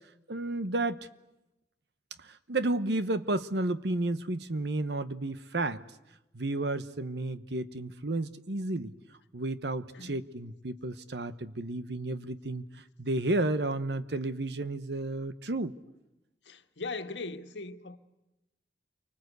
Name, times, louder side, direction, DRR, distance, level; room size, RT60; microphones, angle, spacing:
voice 1, 0.3-1.1 2.2-5.8 6.3-8.9 9.3-15.7, right 2 dB, 70° right, 1.1 m, -32 dB
voice 2, 16.4-18.0, left 3 dB, 85° left, 1.6 m, -39 dB
29.0 x 24.5 x 8.2 m
head